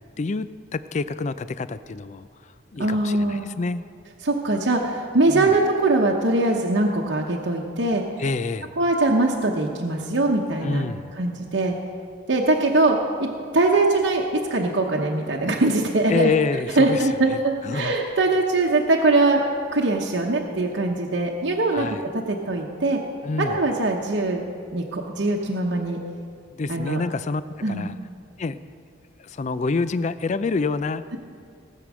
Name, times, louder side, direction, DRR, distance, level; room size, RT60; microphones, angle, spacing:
voice 1, 0.7-2.3 2.7-3.9 5.3-5.5 8.2-8.7 10.6-11.1 16.1-17.0 17.3-17.4 17.6-17.9 21.7-22.0 23.2-23.6 26.5-28.0 28.4-28.6 29.2-31.2, left 4 dB, 40° left, 14 dB, 0.4 m, -27 dB
voice 2, 2.8-3.5 4.2-8.0 8.8-10.9 11.2-11.7 12.3-13.3 13.5-16.3 16.7-19.4 19.7-21.9 22.1-23.0 23.4-24.4 24.7-26.0 26.7-27.0 27.6-27.9, right 2 dB, 65° right, -1 dB, 1.0 m, -22 dB
18.5 x 7.6 x 6.2 m, 2.3 s
head